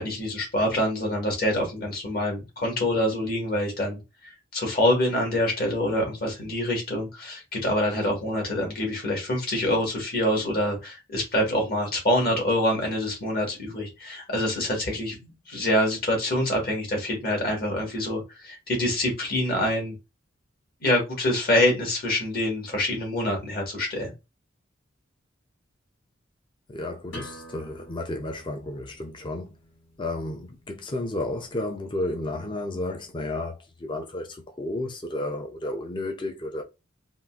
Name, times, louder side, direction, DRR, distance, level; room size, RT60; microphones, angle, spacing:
voice 1, 0.0-19.9 20.8-24.1, left 1 dB, 50° left, 1.5 m, -26 dB
voice 2, 26.7-29.5 30.0-36.6, left 2 dB, 25° left, 0.4 m, -32 dB
sound 1, 27.1-32.5, left 1 dB, 80° left, 2.0 m, -48 dB
3.7 x 2.4 x 2.3 m
head